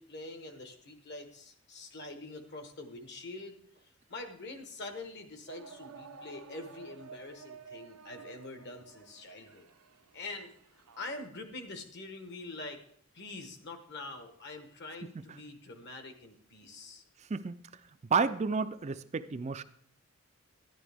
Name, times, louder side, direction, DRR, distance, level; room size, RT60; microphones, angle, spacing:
voice 1, 0.0-3.6 3.8-9.7 10.1-10.5 11.0-12.8 13.1-17.0, left 2 dB, 50° left, 6 dB, 1.3 m, -45 dB
sound 1, 5.5-11.3, right 5 dB, 85° right, 0.8 m, -52 dB
voice 2, 17.3-17.6 18.1-19.6, right 5 dB, 30° right, 13 dB, 0.4 m, -31 dB
12.0 x 11.0 x 3.5 m, 0.63 s
head